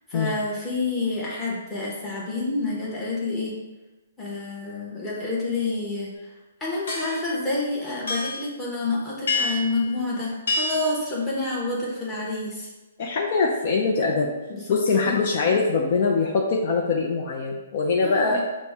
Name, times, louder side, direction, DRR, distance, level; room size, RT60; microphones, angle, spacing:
voice 1, 0.1-3.5 4.2-6.3 6.6-12.7 14.5-14.7 15.1-15.2 18.0-18.4, left 3 dB, 5° left, -7 dB, 0.9 m, -28 dB
sound 1, 6.9-7.3 8.1-8.5 9.3-9.8 10.5-10.9, left 2 dB, 90° left, 1.0 m, -27 dB
voice 2, 13.0-14.3 14.7-18.4, left 4 dB, 45° left, -1 dB, 0.5 m, -23 dB
5.9 x 2.1 x 3.4 m, 1.1 s
hypercardioid pair, 165°, 0 cm